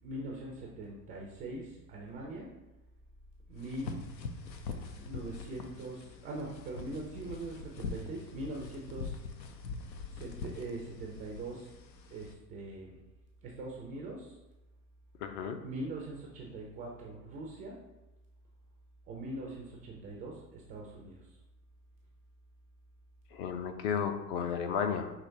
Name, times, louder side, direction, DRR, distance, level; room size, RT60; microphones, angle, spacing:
voice 1, 0.0-2.5 3.5-4.0 5.0-9.2 10.1-11.7 12.1-13.0 13.4-14.4 15.6-17.8 19.1-21.2, right 2 dB, 20° right, -2 dB, 0.3 m, -42 dB
sound 1, 3.6-12.3, left 4 dB, 80° left, 0.7 m, -43 dB
voice 2, 15.2-15.6 23.3-25.1, left 7 dB, 40° left, 7 dB, 0.5 m, -33 dB
5.7 x 3.0 x 2.6 m, 1.0 s
hypercardioid pair, 95°, 50 cm